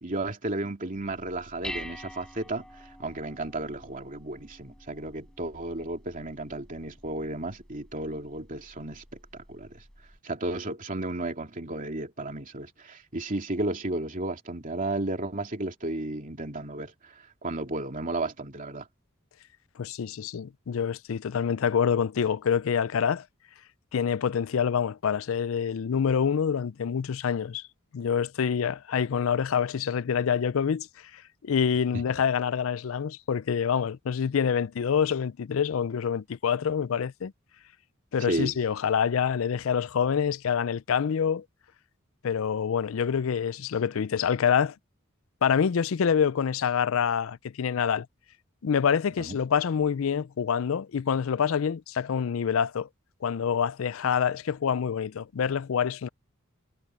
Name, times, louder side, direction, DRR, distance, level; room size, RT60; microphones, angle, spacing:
voice 1, 0.0-9.0 9.3-9.8 10.2-18.9 31.9-32.0 38.3-38.6 49.2-49.4, right 2 dB, 40° right, 2.9 m, -33 dB
Dishes pots and pans, 1.0-10.2, left 1 dB, 5° left, 5.3 m, -47 dB
voice 2, 19.8-23.2 23.9-27.6 27.9-30.9 31.1-37.3 38.1-41.4 42.2-44.7 45.4-48.1 48.6-52.9 53.2-56.1, left 7 dB, 70° left, 0.4 m, -26 dB
head